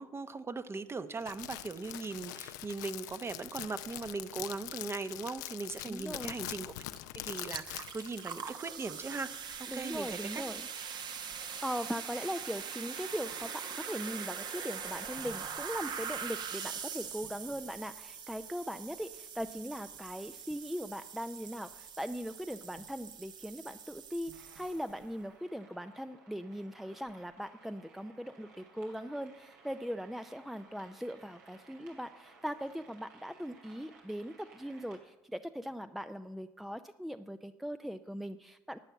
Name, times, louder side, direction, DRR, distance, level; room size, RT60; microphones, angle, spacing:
voice 1, 0.0-9.3 9.6-10.4, right 3 dB, 25° right, 12 dB, 0.9 m, -39 dB
Crackle, 1.2-8.3, left 15 dB, 75° left, 0.6 m, -43 dB
voice 2, 5.9-6.3 9.7-10.6 11.4-38.8, equal, ahead, 10 dB, 0.5 m, -40 dB
sound 1, 6.9-7.0 7.3-25.0, right 7 dB, 50° right, 1.1 m, -43 dB
sound 2, 24.3-35.0, right 3 dB, 85° right, 2.8 m, -59 dB
11.5 x 8.9 x 6.9 m, 1.1 s
hypercardioid pair, 65°, 10 cm